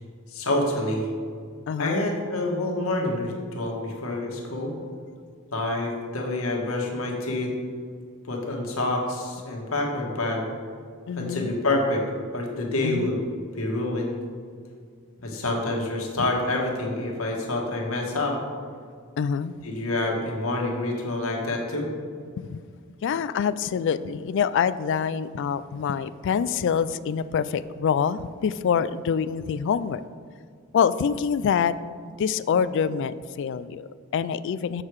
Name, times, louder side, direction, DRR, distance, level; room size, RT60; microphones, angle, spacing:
voice 1, 0.3-1.1 1.8-4.7 5.5-7.5 8.3-10.4 11.2-12.0 12.3-13.2 13.5-14.1 15.2-18.4 19.6-21.9, left 2 dB, 85° left, -1 dB, 1.6 m, -27 dB
voice 2, 1.7-2.0 11.1-11.5 12.8-13.1 19.2-19.5 22.4-22.6 23.0-30.0 30.7-31.8 32.2-34.8, left 7 dB, 60° left, 16 dB, 0.3 m, -25 dB
7.5 x 6.5 x 4.7 m, 2.1 s
head